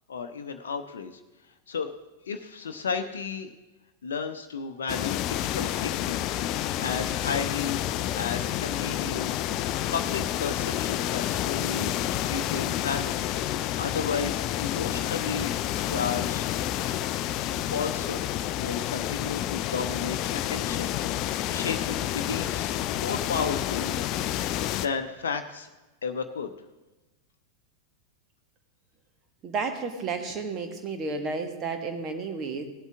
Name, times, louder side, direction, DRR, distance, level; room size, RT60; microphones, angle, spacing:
voice 1, 0.1-1.1 1.7-1.9 2.3-3.5 4.0-6.3 6.8-7.8 8.2-9.6 9.9-13.4 13.8-15.5 15.8-16.5 17.6-18.2 18.6-21.0 21.5-24.0 24.8-25.7 26.0-26.5, left 6 dB, 65° left, 5 dB, 0.8 m, -33 dB
sound 1, 4.9-24.9, left 12 dB, 40° left, 0.4 m, -29 dB
voice 2, 29.4-32.6, right 4 dB, 30° right, 5 dB, 1.7 m, -32 dB
17.5 x 8.0 x 3.6 m, 1.1 s
figure-of-eight pair, 90°, 0 cm